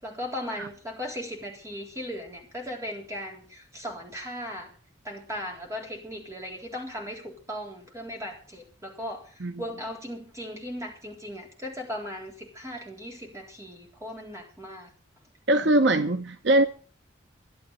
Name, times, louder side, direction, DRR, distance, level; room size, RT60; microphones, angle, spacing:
voice 1, 0.0-4.7 5.0-14.9, equal, 15° right, 3.7 m, -37 dB
voice 2, 15.5-16.7, right 1 dB, 70° right, 1.0 m, -21 dB
13.0 x 11.5 x 6.4 m
head